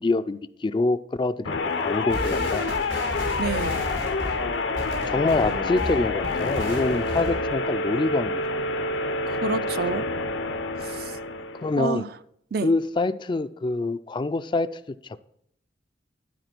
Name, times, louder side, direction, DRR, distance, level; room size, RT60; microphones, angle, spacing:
voice 1, 0.0-2.7 5.1-8.7 9.9-10.0 11.6-12.0 12.6-15.2, left 3 dB, 25° left, 0.3 m, -26 dB
sound 1, 1.5-11.8, left 3 dB, 85° left, 0.8 m, -28 dB
sound 2, 2.1-7.6, equal, 80° right, 3.7 m, -34 dB
voice 2, 3.4-3.9 9.3-10.0 10.8-11.2 11.8-12.1 12.5-12.7, right 4 dB, 55° right, 0.5 m, -29 dB
12.0 x 4.3 x 5.9 m
head